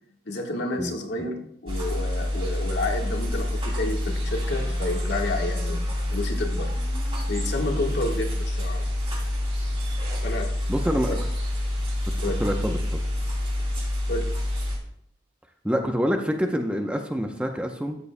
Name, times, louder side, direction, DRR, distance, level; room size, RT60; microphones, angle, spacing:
voice 1, 0.2-6.8 7.3-8.8 10.2-10.5 11.1-11.2 12.2-12.4 14.1-14.3, left 2 dB, 70° left, 1 dB, 1.5 m, -30 dB
sound 1, 1.7-14.8, left 1 dB, 30° right, 2.6 m, -27 dB
voice 2, 10.7-11.2 12.2-13.0 15.6-18.0, equal, 5° right, 3 dB, 0.7 m, -26 dB
13.0 x 9.6 x 2.2 m, 0.69 s
head